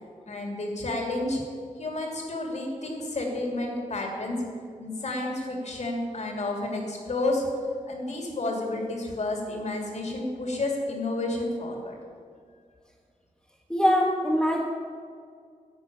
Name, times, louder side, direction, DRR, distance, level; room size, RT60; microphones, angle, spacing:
voice 1, 0.3-1.4 1.8-4.4 4.8-7.4 7.9-12.0, left 2 dB, 55° left, 1 dB, 2.7 m, -30 dB
voice 2, 13.7-14.6, equal, 5° left, -4 dB, 1.4 m, -22 dB
11.0 x 6.5 x 8.9 m, 2.1 s
wide cardioid pair, 120°, 14 cm